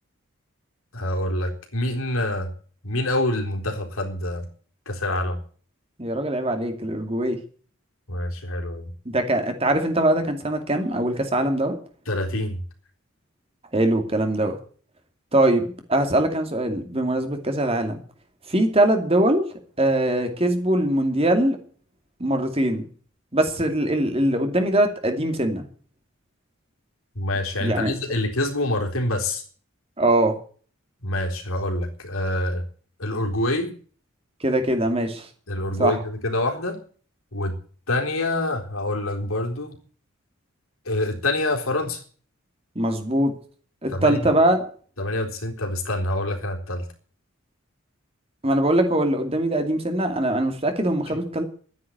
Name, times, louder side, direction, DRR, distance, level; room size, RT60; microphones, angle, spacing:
voice 1, 0.9-2.5 2.8-4.5 4.9-5.4 8.1-8.9 12.1-12.6 27.2-29.4 31.0-32.6 33.0-33.7 35.5-36.8 37.3-37.6 37.9-39.8 40.9-42.0 43.9-44.3 45.0-46.9, left 1 dB, 80° left, 2 dB, 3.9 m, -26 dB
voice 2, 6.0-7.4 9.1-11.8 13.7-14.6 15.3-15.6 15.9-18.0 18.5-19.4 19.8-21.6 22.2-22.8 23.3-25.7 27.6-27.9 30.0-30.3 34.4-35.3 35.8-36.0 42.7-43.3 43.8-44.7 48.4-51.4, right 1 dB, 25° right, 5 dB, 2.6 m, -22 dB
12.5 x 9.7 x 9.6 m, 0.44 s
head